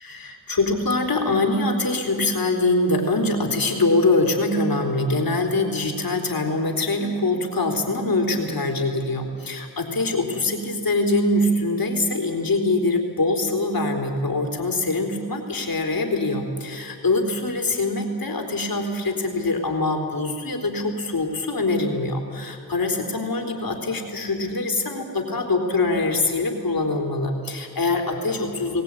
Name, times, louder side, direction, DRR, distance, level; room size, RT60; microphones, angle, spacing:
voice 1, 0.0-28.8, left 2 dB, 60° left, 2 dB, 3.8 m, -23 dB
22.0 x 18.0 x 9.0 m, 2.3 s
cardioid pair, 50°, 39 cm